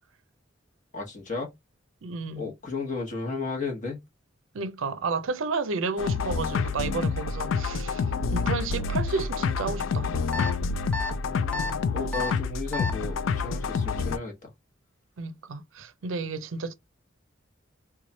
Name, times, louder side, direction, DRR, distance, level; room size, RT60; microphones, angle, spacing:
voice 1, 0.9-1.5 2.4-4.0 11.2-14.3, left 4 dB, 40° left, 1.0 m, -34 dB
voice 2, 2.0-2.5 4.5-8.0 8.3-10.2 15.2-16.7, right 4 dB, 80° right, 0.5 m, -31 dB
sound 1, 6.0-14.2, left 4 dB, 75° left, 0.4 m, -28 dB
sound 2, 10.3-10.5 10.9-11.1 11.5-11.7 12.1-12.3 12.7-12.9, left 3 dB, 5° left, 0.6 m, -30 dB
3.1 x 2.3 x 3.9 m
head